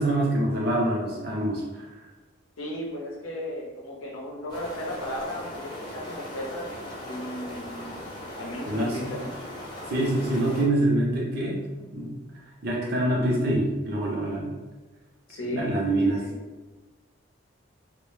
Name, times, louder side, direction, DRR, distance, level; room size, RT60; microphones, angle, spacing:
voice 1, 0.0-2.0 8.7-9.1 9.9-11.6 11.9-12.1 12.6-14.5 15.4-16.2, right 1 dB, 50° right, -3 dB, 0.6 m, -25 dB
voice 2, 2.6-6.7 7.1-8.0 8.4-9.3 15.3-15.7 16.2-16.3, left 1 dB, 85° left, -2 dB, 0.6 m, -35 dB
sound 1, 4.5-10.6, left 1 dB, 25° left, 0.5 m, -39 dB
2.1 x 2.0 x 3.0 m, 1.2 s
head